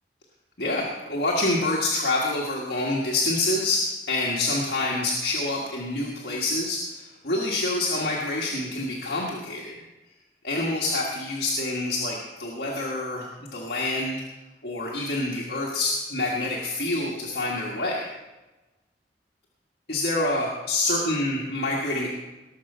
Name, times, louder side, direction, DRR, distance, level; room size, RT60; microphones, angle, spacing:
voice 1, 0.6-9.7 10.4-13.3 13.5-14.2 14.6-18.0 19.9-22.1, left 2 dB, 65° left, -3 dB, 1.6 m, -27 dB
19.0 x 7.0 x 5.5 m, 1.1 s
head